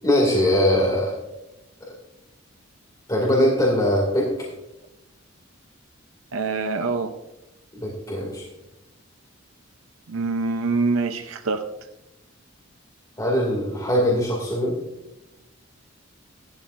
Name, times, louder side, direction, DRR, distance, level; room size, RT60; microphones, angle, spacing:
voice 1, 0.0-1.2 3.1-4.5 7.8-8.4 13.2-14.8, equal, 20° left, -4 dB, 2.3 m, -21 dB
voice 2, 6.3-7.2 10.1-11.7, right 4 dB, 90° right, 7 dB, 0.6 m, -25 dB
15.5 x 12.0 x 2.6 m, 0.97 s
head